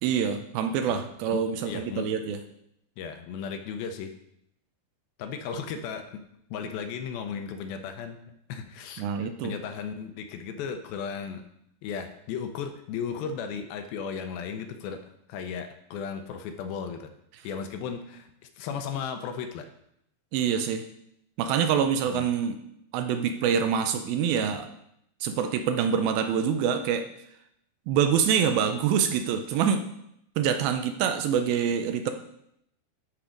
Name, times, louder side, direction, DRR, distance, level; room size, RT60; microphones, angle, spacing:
voice 1, 0.0-2.4 9.0-9.5 20.3-20.8 21.4-22.6 22.9-24.7 25.2-27.1 27.9-29.8 30.4-32.1, right 7 dB, 80° right, 7 dB, 2.3 m, -25 dB
voice 2, 1.3-2.1 3.0-4.1 5.2-6.2 6.5-11.4 11.8-15.0 15.3-17.1 17.4-18.3 18.6-19.7 22.1-22.3, left 6 dB, 80° left, 7 dB, 2.3 m, -35 dB
12.0 x 4.6 x 5.0 m, 0.77 s
omnidirectional pair, 4.5 m